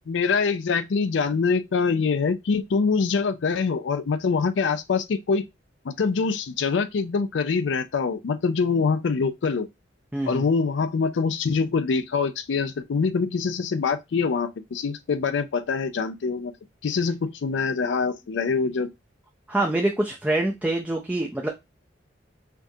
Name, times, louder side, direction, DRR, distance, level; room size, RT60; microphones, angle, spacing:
voice 1, 0.1-5.4 5.8-9.7 10.3-16.5 16.8-18.9, left 5 dB, 75° left, 0.4 m, -24 dB
voice 2, 10.1-10.5 19.5-21.5, right 2 dB, 10° right, 0.4 m, -25 dB
4.5 x 2.4 x 2.7 m
head